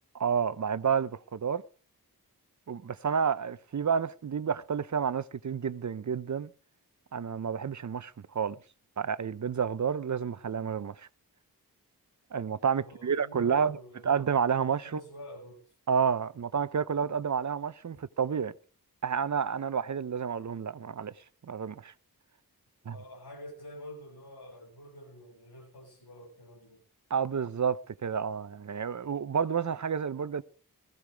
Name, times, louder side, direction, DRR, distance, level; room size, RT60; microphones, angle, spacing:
voice 1, 0.1-1.6 2.7-6.5 7.1-8.6 9.0-11.1 12.3-13.8 14.0-15.0 15.9-18.5 19.0-21.1 21.4-21.9 22.9-23.0 27.1-30.4, right 7 dB, 50° right, 0.6 m, -30 dB
voice 2, 12.8-14.2 14.8-15.7 22.9-26.8 27.3-27.4, left 1 dB, 80° left, 7.5 m, -48 dB
17.0 x 15.0 x 3.4 m
cardioid pair, 50°, 38 cm